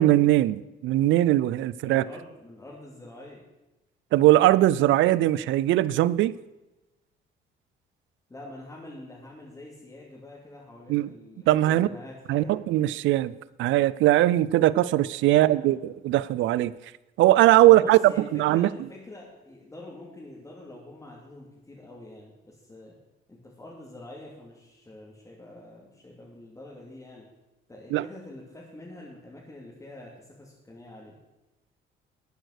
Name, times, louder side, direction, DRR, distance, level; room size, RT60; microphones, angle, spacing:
voice 1, 0.0-2.0 4.1-6.3 10.9-11.1 11.5-11.9 12.3-13.3 13.6-16.7 17.2-18.0 18.3-18.7 27.9-28.0, right 15 dB, 75° right, 0.5 m, -20 dB
voice 2, 1.8-3.4 8.3-12.6 15.3-15.9 17.6-22.9 23.3-27.3 27.7-31.2, left 2 dB, 15° left, 2.7 m, -45 dB
13.0 x 9.1 x 6.6 m
cardioid pair, 115°, 20 cm